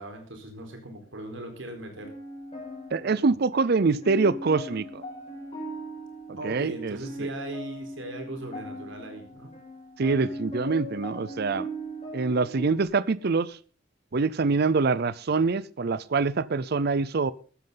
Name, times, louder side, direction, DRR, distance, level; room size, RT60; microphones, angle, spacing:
voice 1, 0.0-2.1 6.4-9.5, right 1 dB, 70° right, 4 dB, 4.3 m, -39 dB
sound 1, 2.0-12.8, right 1 dB, 30° left, 6.6 m, -39 dB
voice 2, 2.9-5.0 6.4-7.0 10.0-11.7 12.1-13.6 14.1-17.3, right 4 dB, 55° right, 19 dB, 0.5 m, -25 dB
14.5 x 13.0 x 3.9 m, 0.39 s
head